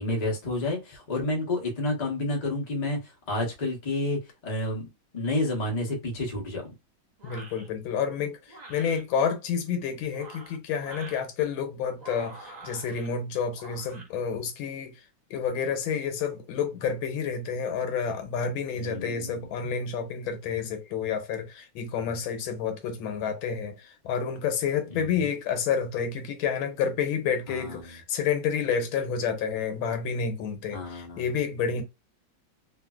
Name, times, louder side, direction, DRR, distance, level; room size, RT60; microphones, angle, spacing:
voice 1, 0.0-4.9 5.1-6.7 18.7-19.5 24.9-25.3 27.5-27.9 30.7-31.3, left 2 dB, 35° left, 0.6 m, -30 dB
voice 2, 7.2-8.4 8.7-14.9 15.3-23.7 24.0-31.8, left 6 dB, 85° left, 1.5 m, -29 dB
sound 1, 7.2-7.7 8.5-9.0 10.0-11.2 11.9-13.1 13.5-14.1, right 2 dB, 85° right, 0.3 m, -46 dB
3.2 x 2.6 x 2.3 m
omnidirectional pair, 2.2 m